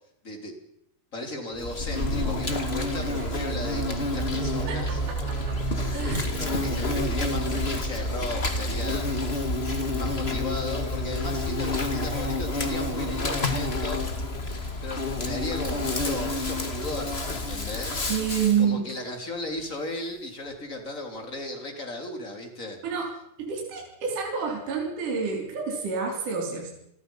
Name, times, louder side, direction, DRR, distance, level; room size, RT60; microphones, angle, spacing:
voice 1, 1.1-5.0 6.4-9.4 9.8-14.0 14.8-18.0 18.6-22.8, left 1 dB, 20° left, 3 dB, 3.4 m, -36 dB
Insect, 1.6-18.6, left 1 dB, 35° left, 0.9 m, -29 dB
sound 1, 4.3-7.6 8.0-12.2 12.5-12.9 13.5-13.8 14.1-14.4 15.0-15.1 15.4-15.5 16.7-16.8 17.5-18.4 19.5-19.7 20.0-20.1 20.5-20.6, right 2 dB, 60° left, 7.1 m, -39 dB
voice 2, 4.7-5.6 5.8-6.3 18.1-18.9 22.8-23.1 23.4-26.7, right 6 dB, 50° right, -1 dB, 5.1 m, -28 dB
28.0 x 19.5 x 5.6 m, 0.78 s
omnidirectional pair, 4.9 m